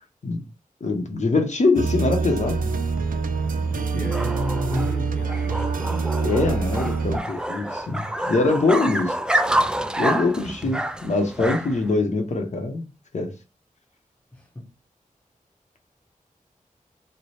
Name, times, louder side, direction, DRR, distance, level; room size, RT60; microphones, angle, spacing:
voice 1, 0.8-2.8 6.2-9.2 10.0-12.8 13.1-13.3, left 3 dB, 55° left, 0.8 m, -23 dB
sound 1, 1.8-7.2, right 4 dB, 80° right, 0.4 m, -25 dB
sound 2, 2.5-11.9, right 1 dB, 5° right, 0.3 m, -28 dB
voice 2, 3.4-7.3 14.3-14.7, left 1 dB, 10° left, 0.9 m, -34 dB
3.2 x 2.1 x 4.1 m
wide cardioid pair, 105°, 14 cm